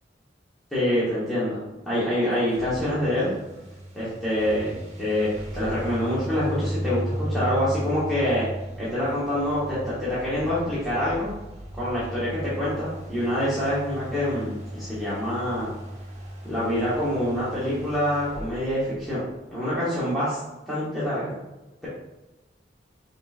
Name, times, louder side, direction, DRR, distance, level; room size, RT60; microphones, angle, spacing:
voice 1, 0.7-3.3 3.9-8.5 8.8-11.3 11.7-15.7 16.4-19.2 19.5-20.4 20.7-21.4, left 1 dB, ahead, -12 dB, 1.0 m, -26 dB
sound 1, 2.2-19.7, right 1 dB, 35° right, 0.9 m, -36 dB
5.2 x 3.2 x 2.4 m, 1.1 s
head